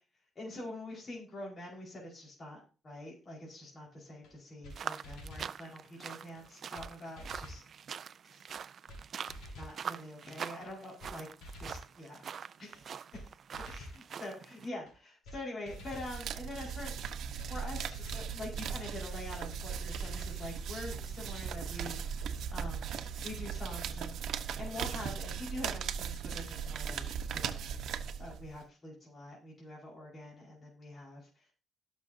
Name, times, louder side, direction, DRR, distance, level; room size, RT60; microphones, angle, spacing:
voice 1, 0.3-7.6 8.2-8.4 9.5-11.3 11.6-12.2 12.6-13.3 13.6-17.0 17.5-22.2 22.5-22.9 23.2-27.7 28.2-31.5, left 1 dB, 40° left, -4 dB, 4.7 m, -45 dB
sound 1, 4.2-4.3 4.6-4.8 5.0-5.5 6.4-6.5 6.8-6.9 7.2-7.7 8.5-8.6 8.9-9.0 9.3-9.8 10.6-10.7 11.0-11.1 11.4-11.9 12.7-12.8 13.1-13.3 13.5-14.0 14.9-15.0 15.2-15.4 15.7-16.1 17.0-17.1 17.4-17.5 17.8-18.3 19.1-19.2 19.5-19.6 19.9-20.4, equal, 85° left, 3.7 m, -47 dB
sound 2, 4.7-14.7, right 7 dB, 55° right, 0.5 m, -44 dB
sound 3, 15.8-28.6, right 7 dB, 75° right, 1.0 m, -38 dB
18.5 x 6.5 x 2.7 m, 0.34 s
cardioid pair, 90°, 0 cm